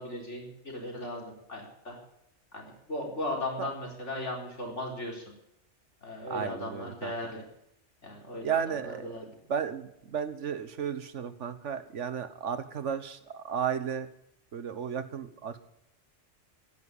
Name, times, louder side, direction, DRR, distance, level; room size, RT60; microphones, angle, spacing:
voice 1, 0.0-2.0 2.5-5.2 6.0-7.4 8.0-9.3, left 1 dB, 80° left, 0 dB, 4.7 m, -37 dB
voice 2, 6.3-7.1 8.4-9.1 9.5-14.1 14.5-15.6, right 7 dB, 85° right, 12 dB, 1.5 m, -33 dB
14.5 x 11.0 x 8.4 m, 0.81 s
omnidirectional pair, 1.2 m